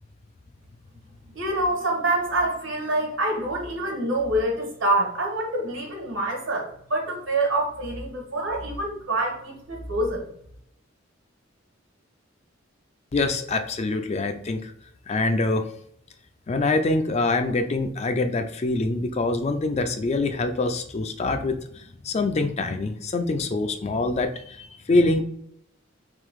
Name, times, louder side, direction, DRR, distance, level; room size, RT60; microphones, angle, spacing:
voice 1, 1.3-10.2, right 1 dB, 70° right, 1 dB, 1.4 m, -26 dB
voice 2, 13.1-14.7 15.1-15.7 16.5-25.2, left 2 dB, 35° left, 7 dB, 0.4 m, -25 dB
3.7 x 2.7 x 4.6 m, 0.68 s
head